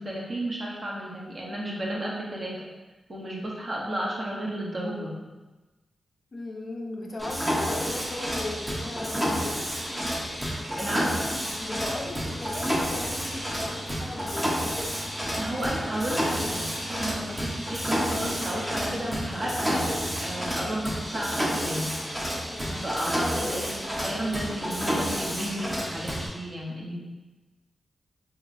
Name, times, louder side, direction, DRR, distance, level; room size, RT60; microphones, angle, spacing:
voice 1, 0.0-2.6 3.1-5.2 10.8-11.1 15.4-21.9 22.8-27.0, right 1 dB, 40° right, -3 dB, 0.8 m, -32 dB
voice 2, 6.3-9.6 11.6-14.7 22.5-23.2, left 2 dB, 45° left, 1 dB, 0.4 m, -37 dB
Mechanisms, 7.2-26.3, equal, 15° right, 0.7 m, -30 dB
3.9 x 2.9 x 2.5 m, 1.2 s
wide cardioid pair, 105°, 0 cm